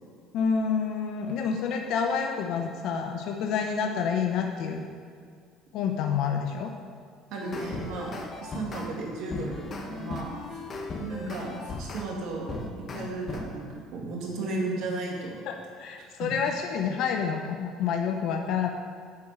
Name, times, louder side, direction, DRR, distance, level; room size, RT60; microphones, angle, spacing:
voice 1, 0.3-4.9 5.7-6.7 15.5-18.7, left 6 dB, 65° left, 4 dB, 0.7 m, -28 dB
voice 2, 7.3-10.6 11.0-15.3 16.1-16.3, right 2 dB, 65° right, -1 dB, 2.2 m, -34 dB
sound 1, 7.4-8.9 9.3-12.1 12.5-13.4, left 3 dB, 40° left, 1.3 m, -37 dB
9.4 x 4.6 x 7.6 m, 2.2 s
supercardioid pair, 85°, 0 cm